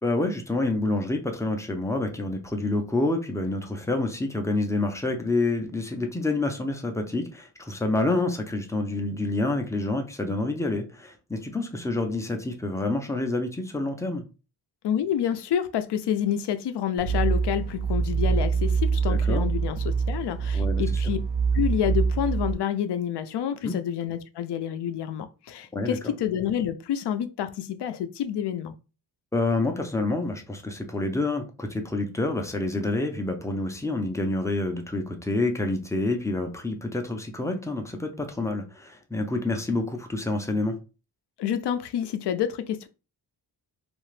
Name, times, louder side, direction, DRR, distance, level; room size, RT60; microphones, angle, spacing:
voice 1, 0.0-14.2 19.1-19.4 20.5-21.0 23.6-23.7 25.7-26.1 29.3-40.8, left 2 dB, 5° left, 0.4 m, -28 dB
voice 2, 14.8-21.2 21.5-28.7 41.4-42.9, left 9 dB, 70° left, 0.5 m, -28 dB
sound 1, 17.0-22.5, right 5 dB, 65° right, 0.7 m, -25 dB
2.8 x 2.5 x 3.1 m
wide cardioid pair, 125°, 44 cm